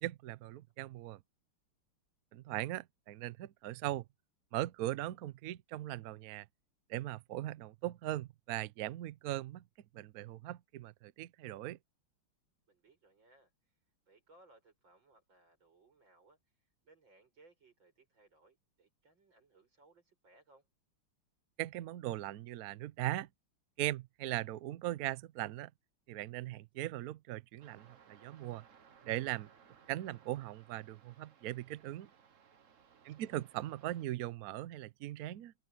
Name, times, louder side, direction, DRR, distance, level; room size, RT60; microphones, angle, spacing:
voice 1, 0.0-1.2 2.3-4.0 4.5-6.5 6.9-9.6 9.9-11.8 21.6-23.3 23.8-25.7 26.1-28.6 29.0-29.5 29.9-32.1 33.0-35.5, right 15 dB, 85° right, 0.8 m, -39 dB
voice 2, 0.7-1.0 12.7-13.8 14.0-20.7 32.9-33.3, right 2 dB, 60° right, 7.8 m, -66 dB
sound 1, 27.6-34.1, right 7 dB, 45° right, 1.3 m, -63 dB
open air
omnidirectional pair, 2.3 m